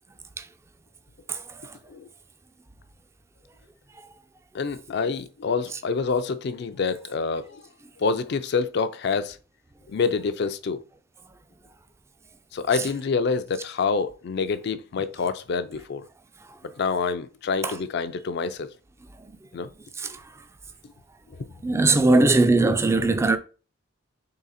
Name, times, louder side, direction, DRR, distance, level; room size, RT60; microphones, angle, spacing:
voice 1, 4.5-7.6 8.0-9.4 9.9-10.8 12.5-16.1 16.8-18.7 19.5-19.7, left 5 dB, 55° left, 0.4 m, -27 dB
voice 2, 21.6-23.4, right 2 dB, 15° right, 0.3 m, -19 dB
3.8 x 3.2 x 4.1 m
head